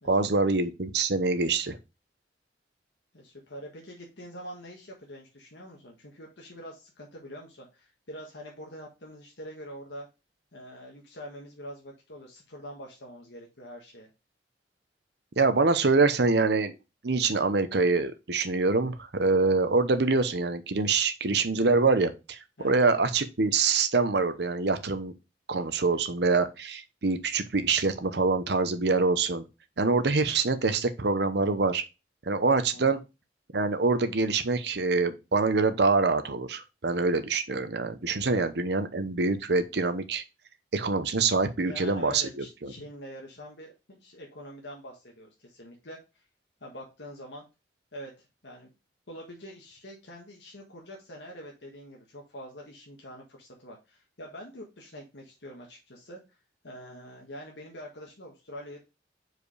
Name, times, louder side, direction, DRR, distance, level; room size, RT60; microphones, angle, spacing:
voice 1, 0.1-1.8 15.4-16.7 17.0-22.4 22.6-25.1 25.5-29.4 29.8-31.8 32.3-33.0 33.5-40.2 40.7-42.7, right 3 dB, 65° right, 0.8 m, -25 dB
voice 2, 3.1-10.1 10.5-14.1 22.6-22.9 32.6-33.0 38.3-38.5 41.6-46.2 46.6-47.4 47.9-48.7 49.1-56.2 56.6-58.8, equal, 75° left, 1.6 m, -45 dB
5.0 x 4.8 x 4.8 m
head